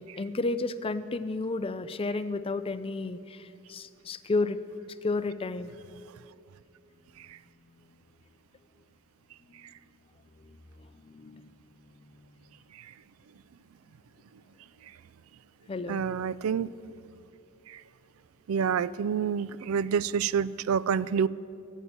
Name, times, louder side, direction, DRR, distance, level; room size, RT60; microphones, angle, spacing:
voice 1, 0.0-4.6 5.0-5.7 10.4-11.5 15.7-16.0, left 3 dB, 25° left, 13 dB, 0.4 m, -32 dB
voice 2, 15.9-16.7 17.7-17.8 18.5-21.3, right 7 dB, 85° right, 19 dB, 0.4 m, -27 dB
14.0 x 8.2 x 8.6 m, 2.5 s
head